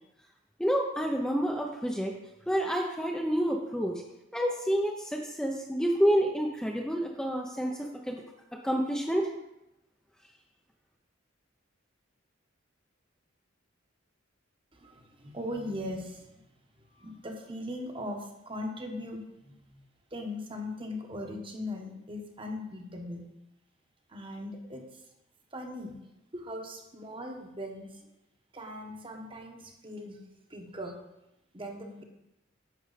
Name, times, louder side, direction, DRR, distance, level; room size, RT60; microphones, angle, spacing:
voice 1, 0.6-2.1 2.5-4.0 4.3-8.2 8.6-9.3, equal, 5° left, 0 dB, 0.7 m, -28 dB
voice 2, 14.7-16.5 16.9-19.9 20.1-23.3 24.1-25.0 25.5-26.0 26.3-28.1 28.5-30.2 30.5-31.0 31.5-32.0, left 1 dB, 25° right, 3 dB, 1.2 m, -39 dB
10.0 x 7.0 x 4.1 m, 0.89 s
head